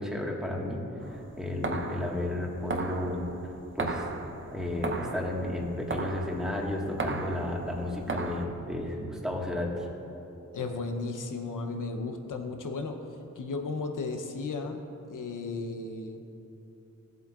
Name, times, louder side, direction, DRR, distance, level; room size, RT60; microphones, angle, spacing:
voice 1, 0.0-3.3 3.7-4.0 4.5-9.9, left 1 dB, ahead, -2 dB, 1.6 m, -33 dB
sound 1, 1.0-8.4, right 3 dB, 40° right, 0.7 m, -36 dB
voice 2, 10.5-13.0 13.4-14.8 15.1-16.2, left 3 dB, 90° left, 5 dB, 0.8 m, -34 dB
15.5 x 7.7 x 2.4 m, 2.8 s
cardioid pair, 60°, 31 cm